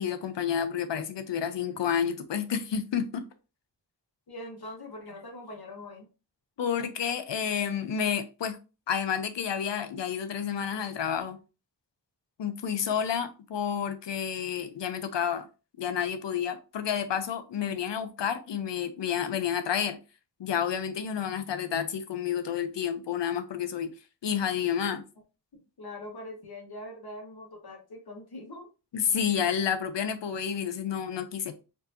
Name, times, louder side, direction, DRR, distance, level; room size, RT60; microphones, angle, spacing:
voice 1, 0.0-3.2 6.6-8.6 8.9-11.4 12.4-15.5 15.8-20.0 20.4-23.9 24.2-25.0 28.9-31.6, left 8 dB, 85° left, 0.6 m, -30 dB
voice 2, 4.3-6.0 25.8-28.7, left 1 dB, 60° left, 1.3 m, -42 dB
4.5 x 2.7 x 2.6 m
wide cardioid pair, 75°, 42 cm